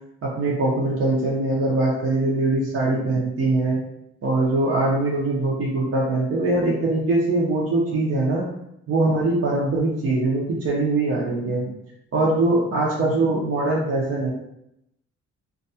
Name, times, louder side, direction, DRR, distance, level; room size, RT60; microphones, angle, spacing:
voice 1, 0.2-3.8 4.2-8.5 8.9-11.7 12.1-14.3, right 2 dB, 50° right, -5 dB, 0.7 m, -22 dB
2.6 x 2.3 x 2.7 m, 0.82 s
cardioid pair, 90°, 30 cm